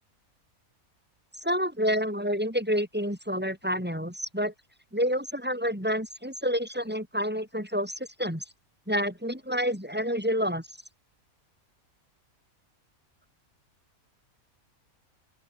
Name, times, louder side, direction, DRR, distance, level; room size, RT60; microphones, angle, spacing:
voice 1, 1.4-4.5 4.9-8.4 8.9-10.7, equal, 5° right, 5.8 m, -28 dB
open air
omnidirectional pair, 1.5 m